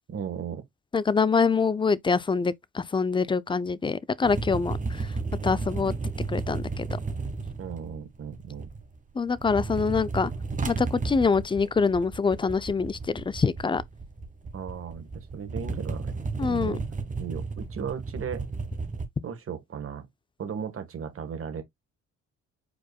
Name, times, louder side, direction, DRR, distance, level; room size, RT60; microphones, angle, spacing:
voice 1, 0.1-0.6 7.6-8.7 14.5-16.2 16.4-16.8 17.2-18.5 19.2-20.1 20.4-21.6, right 7 dB, 45° right, 1.4 m, -36 dB
voice 2, 0.9-5.0 5.4-5.9 6.3-7.0 9.2-10.3 10.7-13.8 16.4-16.8, left 5 dB, 15° left, 0.4 m, -25 dB
sound 1, 4.2-9.0 9.3-19.0, right 4 dB, 25° right, 1.3 m, -33 dB
4.9 x 4.6 x 2.2 m
cardioid pair, 90°, 30 cm